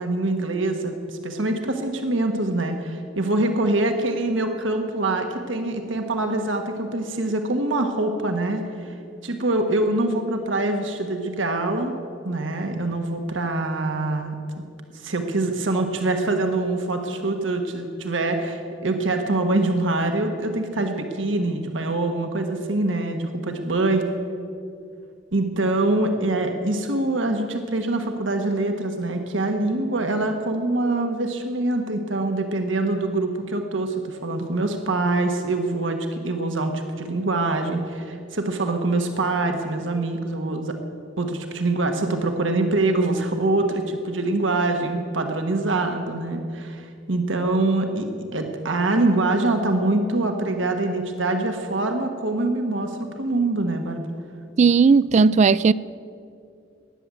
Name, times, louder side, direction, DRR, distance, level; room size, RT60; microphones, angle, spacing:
voice 1, 0.0-8.9 9.2-11.9 12.2-14.6 14.9-24.1 25.3-40.7 41.2-54.0, right 2 dB, 80° right, 1.4 m, -24 dB
voice 2, 54.6-55.7, right 5 dB, 35° right, 0.3 m, -16 dB
19.0 x 7.7 x 9.7 m
head